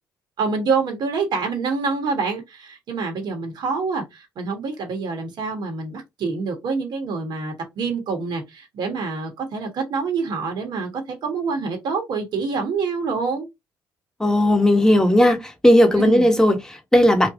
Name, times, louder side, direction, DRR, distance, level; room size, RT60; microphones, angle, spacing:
voice 1, 0.4-13.5 15.9-16.3, right 4 dB, 60° right, 1.4 m, -26 dB
voice 2, 14.2-17.3, left 1 dB, 5° left, 1.4 m, -16 dB
3.6 x 2.7 x 3.7 m
supercardioid pair, 65°, 8 cm